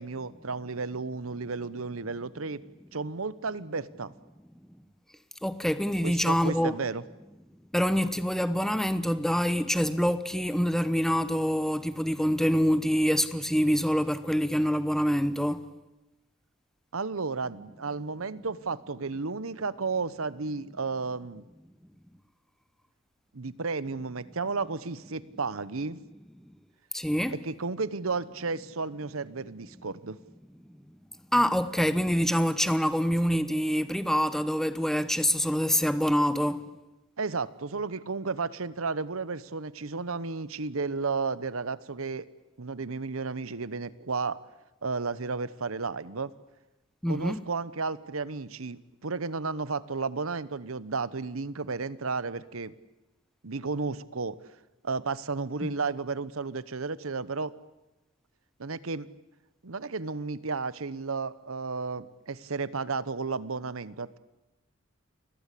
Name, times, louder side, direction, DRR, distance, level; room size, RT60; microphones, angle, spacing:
voice 1, 0.0-2.6 2.9-4.1 6.0-7.0 16.9-21.4 23.3-26.0 27.3-30.2 37.2-42.3 42.6-44.4 44.8-46.3 47.1-52.7 53.4-54.4 54.8-57.5 58.6-59.1 59.6-64.2, right 4 dB, 90° right, 1.0 m, -33 dB
voice 2, 5.4-6.8 7.7-15.6 26.9-27.4 31.3-36.6 47.0-47.4, equal, ahead, 0.9 m, -26 dB
29.5 x 21.5 x 8.5 m
head